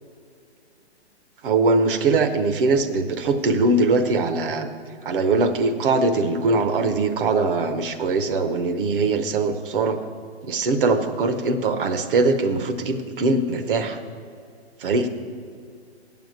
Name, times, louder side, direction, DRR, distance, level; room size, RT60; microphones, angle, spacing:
voice 1, 1.4-4.7 5.0-10.0 10.4-14.0 14.8-15.1, right 3 dB, 50° right, 8 dB, 1.0 m, -21 dB
8.8 x 7.1 x 7.8 m, 2.4 s
hypercardioid pair, 135°, 34 cm